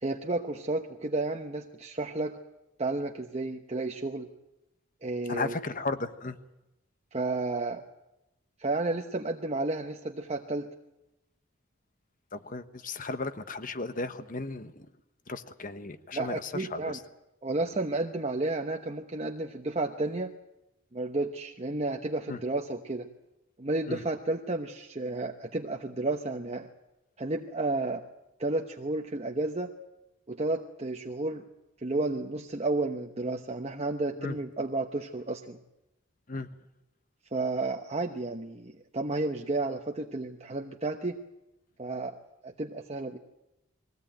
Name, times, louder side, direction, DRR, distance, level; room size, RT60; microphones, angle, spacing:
voice 1, 0.0-2.4 2.8-4.3 5.0-5.5 7.1-7.8 8.6-10.7 16.1-17.0 17.4-20.3 20.9-23.1 23.6-26.7 27.2-28.0 28.4-29.7 30.3-31.4 31.8-35.6 37.3-41.2 41.8-43.2, right 2 dB, 30° right, 2 dB, 1.0 m, -32 dB
voice 2, 5.3-6.4 12.3-14.9 15.3-17.0 22.3-22.4 23.9-24.0 34.2-34.4 36.3-36.5, left 3 dB, 40° left, 10 dB, 1.2 m, -35 dB
22.0 x 17.0 x 9.0 m, 0.94 s
head